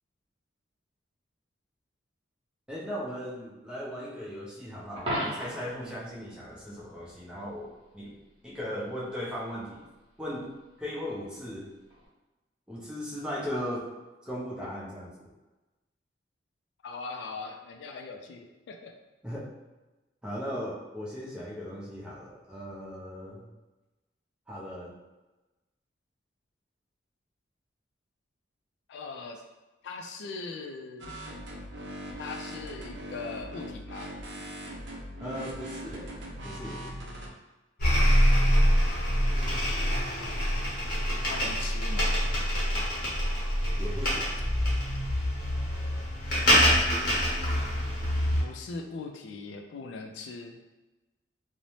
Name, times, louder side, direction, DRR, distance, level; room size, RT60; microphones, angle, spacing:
voice 1, 2.7-8.2 8.4-9.8 10.2-10.5 10.8-11.7 12.7-13.9 14.3-15.1 19.2-19.5 20.2-23.5 24.5-24.9 35.2-36.1 36.4-36.8 43.7-44.3, equal, 5° right, -6 dB, 0.5 m, -37 dB
Coin (dropping), 5.0-5.8 11.9-12.1, equal, 30° right, 0.8 m, -33 dB
voice 2, 16.8-18.9 28.9-29.4 29.8-31.2 32.2-34.1 38.2-38.5 40.2-40.4 41.3-42.2 48.4-50.6, left 4 dB, 70° left, 3 dB, 0.3 m, -40 dB
sound 1, 31.0-37.3, equal, 70° right, 0.5 m, -40 dB
sound 2, 37.8-48.4, equal, 50° left, 0.8 m, -25 dB
2.6 x 2.0 x 3.0 m, 1.1 s
head